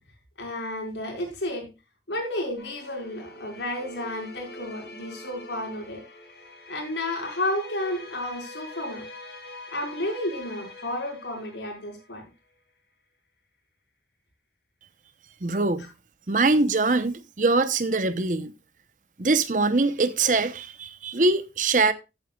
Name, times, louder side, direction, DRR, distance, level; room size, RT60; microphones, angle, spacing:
voice 1, 0.4-1.7 2.1-6.0 6.7-9.0 9.7-12.2, left 1 dB, 90° left, 5.2 m, -32 dB
sound 1, 2.6-12.3, left 2 dB, 70° left, 7.2 m, -44 dB
voice 2, 15.4-15.9 16.3-18.5 19.2-21.9, right 3 dB, 45° right, 0.9 m, -23 dB
14.5 x 9.0 x 2.4 m
head